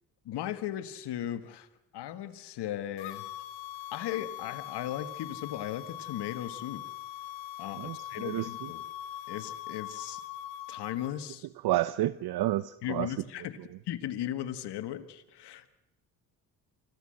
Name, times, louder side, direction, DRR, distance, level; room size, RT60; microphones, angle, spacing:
voice 1, 0.3-1.7 1.9-3.3 3.9-6.8 7.6-8.8 9.3-10.2 10.7-11.5 12.8-13.6 13.9-15.7, left 11 dB, 70° left, 10 dB, 1.6 m, -37 dB
sound 1, 3.0-11.1, left 13 dB, 85° left, 1.3 m, -41 dB
voice 2, 7.8-8.5 11.6-13.1, right 15 dB, 65° right, 16 dB, 0.7 m, -30 dB
25.0 x 15.0 x 7.7 m, 0.93 s
supercardioid pair, 65°, 42 cm